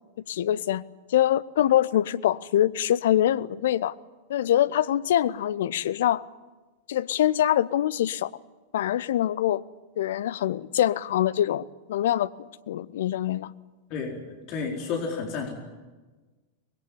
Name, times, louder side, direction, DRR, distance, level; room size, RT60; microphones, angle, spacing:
voice 1, 0.3-0.8 1.1-4.0 4.3-6.3 6.9-8.3 8.7-9.6 10.0-12.3 12.7-13.5, left 11 dB, 60° left, 0.7 m, -24 dB
voice 2, 14.5-15.5, left 5 dB, 40° left, 4.6 m, -31 dB
24.5 x 21.0 x 9.7 m
figure-of-eight pair, 90°, 0 cm